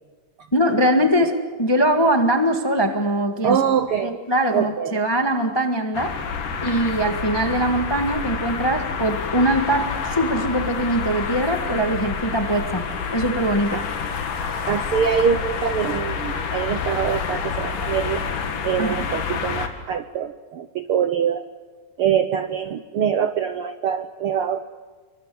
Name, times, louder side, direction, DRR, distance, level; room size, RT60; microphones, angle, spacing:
voice 1, 0.5-3.6 4.0-6.1 6.6-12.8 13.1-13.8 18.8-19.1, right 1 dB, 35° left, 5 dB, 0.4 m, -22 dB
voice 2, 3.4-4.2 4.5-5.0 13.7-13.9 14.7-18.2 18.6-21.4 22.0-24.6, right 8 dB, 75° right, 9 dB, 1.3 m, -24 dB
sound 1, 5.9-19.7, left 6 dB, 80° left, 3.6 m, -28 dB
27.5 x 24.5 x 7.8 m, 1.4 s
omnidirectional pair, 3.6 m